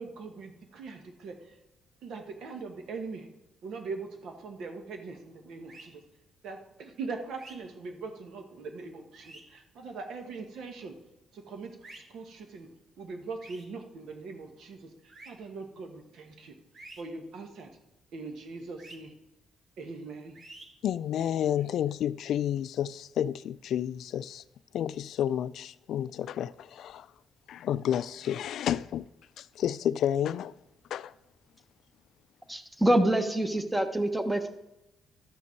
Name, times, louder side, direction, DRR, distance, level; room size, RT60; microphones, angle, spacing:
voice 1, 0.0-1.6 2.0-3.3 3.6-6.0 6.4-11.0 11.3-12.7 13.0-16.6 17.0-17.7 18.1-19.1 19.8-20.4 21.2-21.3, right 4 dB, 75° right, 1.4 m, -41 dB
sound 1, 5.7-5.9 7.3-7.6 9.1-9.4 11.8-12.0 13.4-13.6 15.1-15.3 16.7-17.0 18.8-19.0 20.3-20.7, right 2 dB, 50° right, 2.3 m, -48 dB
voice 2, 20.8-24.4 24.7-27.1 27.5-29.1 29.4-30.5 30.9-31.1, left 10 dB, 75° left, 0.3 m, -30 dB
voice 3, 32.5-34.5, right 1 dB, 10° right, 1.1 m, -26 dB
12.5 x 6.0 x 4.6 m
cardioid pair, 90°, 0 cm